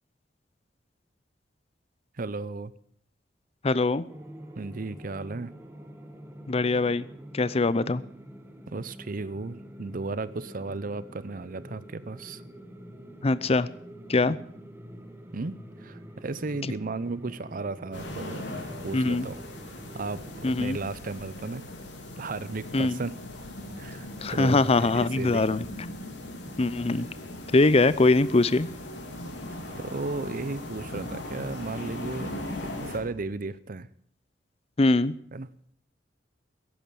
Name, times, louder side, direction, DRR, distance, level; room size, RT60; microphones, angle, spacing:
voice 1, 2.2-2.7 4.6-5.5 8.7-12.4 15.3-19.4 19.9-21.6 22.2-23.2 23.8-24.1 24.3-25.5 29.8-32.3 32.6-33.9 35.3-35.5, right 3 dB, 50° right, 17 dB, 0.7 m, -35 dB
voice 2, 3.6-4.0 6.5-7.1 7.3-8.0 13.2-13.7 14.1-14.4 18.9-19.3 20.4-20.8 22.7-23.0 24.2-25.6 26.6-27.1 27.5-28.7 34.8-35.1, left 2 dB, 35° left, 17 dB, 0.6 m, -22 dB
sound 1, 4.1-20.8, right 1 dB, 15° right, 1.7 m, -46 dB
sound 2, 17.9-33.0, left 1 dB, 90° left, 3.6 m, -39 dB
15.0 x 11.0 x 7.1 m, 0.63 s
head